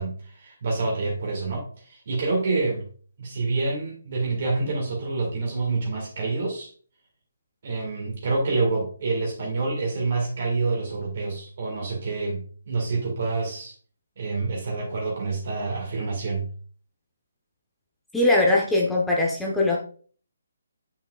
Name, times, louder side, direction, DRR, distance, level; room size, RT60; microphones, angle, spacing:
voice 1, 0.0-2.9 3.2-6.7 7.6-13.7 14.2-16.5, right 3 dB, 50° right, -1 dB, 2.1 m, -27 dB
voice 2, 18.1-19.8, left 2 dB, 5° left, -3 dB, 1.0 m, -21 dB
7.3 x 5.7 x 2.4 m, 0.43 s
figure-of-eight pair, 145°, 0 cm